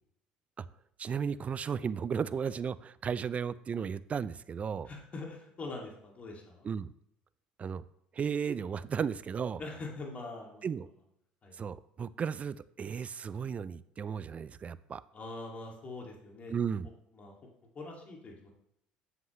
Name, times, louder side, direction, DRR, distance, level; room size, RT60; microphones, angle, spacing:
voice 1, 1.0-4.9 6.6-6.9 7.6-7.8 8.1-9.6 10.6-10.9 11.5-15.0 16.5-16.9, right 7 dB, 35° right, 17 dB, 0.4 m, -34 dB
voice 2, 4.9-6.7 9.6-10.7 11.4-11.5 15.1-16.5 17.2-17.3 17.8-18.5, left 3 dB, 35° left, 0 dB, 2.2 m, -43 dB
8.0 x 7.2 x 3.1 m, 0.75 s
hypercardioid pair, 70°, 4 cm